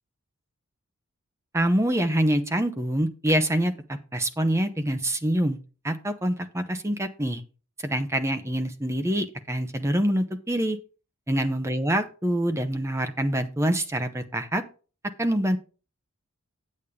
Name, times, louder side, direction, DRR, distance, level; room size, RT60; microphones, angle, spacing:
voice 1, 1.5-5.6 5.8-7.4 7.8-10.8 11.3-14.6 15.2-15.6, right 1 dB, 10° right, 9 dB, 0.8 m, -25 dB
8.6 x 8.3 x 3.6 m, 0.36 s
head